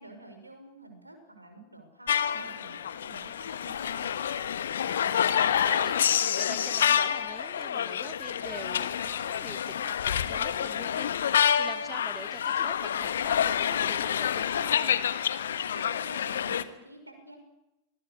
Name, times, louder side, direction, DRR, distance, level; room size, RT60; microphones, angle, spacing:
voice 1, 0.0-4.1 15.4-17.4, right 1 dB, 85° right, 7 dB, 5.7 m, -49 dB
sound 1, 2.1-16.6, left 9 dB, 65° left, 1.2 m, -28 dB
voice 2, 4.8-15.0, right 3 dB, 10° right, 12 dB, 1.4 m, -46 dB
25.0 x 20.0 x 8.3 m, 0.94 s
figure-of-eight pair, 90°, 0 cm